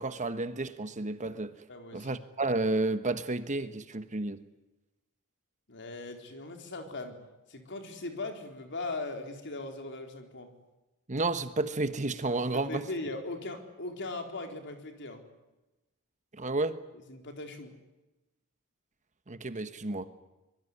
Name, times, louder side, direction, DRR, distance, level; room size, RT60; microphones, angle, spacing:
voice 1, 0.0-1.5 1.9-4.4 11.1-12.9 16.4-16.8 19.3-20.1, right 2 dB, 35° right, 1.2 m, -31 dB
voice 2, 1.7-2.2 5.7-7.2 7.5-10.5 12.5-15.2 17.1-17.7, left 2 dB, 55° left, 4.1 m, -39 dB
24.5 x 23.0 x 9.8 m
head